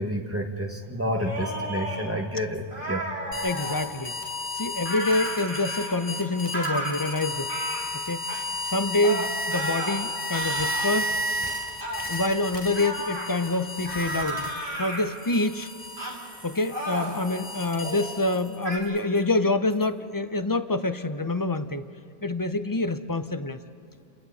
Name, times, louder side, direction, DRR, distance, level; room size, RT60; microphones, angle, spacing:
voice 1, 0.0-3.0, equal, 10° right, 2 dB, 1.7 m, -29 dB
sound 1, 1.1-2.1 2.7-3.8 4.8-6.1 6.5-6.9 7.5-7.9 8.3-8.5 9.0-10.0 10.3-11.1 11.8-12.1 12.7-13.3 13.9-15.0 16.0-16.2 16.7-17.2 17.7-18.1 18.6-18.8, right 1 dB, 45° right, 3.6 m, -33 dB
Bicycle, 2.5-2.6 3.6-3.7 4.1-4.2 4.5-4.6 4.8-4.9 5.1-7.9 8.3-8.4 10.3-10.4 10.8-19.2 19.7-19.8, right 1 dB, 75° right, 4.7 m, -52 dB
sound 2, 3.3-14.8 15.2-18.6, left 1 dB, 5° left, 3.8 m, -33 dB
voice 2, 3.4-4.1 4.5-7.5 7.9-11.2 12.1-14.5 14.8-15.7 16.4-21.8 22.2-23.6, left 2 dB, 25° left, 10 dB, 0.5 m, -26 dB
30.0 x 29.0 x 4.1 m, 2.5 s
omnidirectional pair, 1.2 m